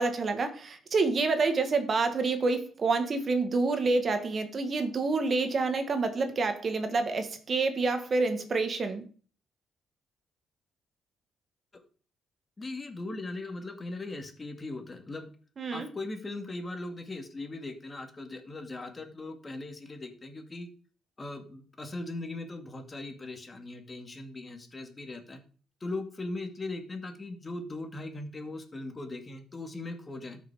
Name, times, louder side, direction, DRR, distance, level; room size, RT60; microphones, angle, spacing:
voice 1, 0.0-9.0 15.6-15.9, right 3 dB, 45° right, 1.8 m, -28 dB
voice 2, 12.6-15.3 15.7-20.7 21.2-25.4 25.8-30.4, left 2 dB, 25° left, 2.2 m, -39 dB
13.0 x 6.2 x 5.0 m
cardioid pair, 90°, 0 cm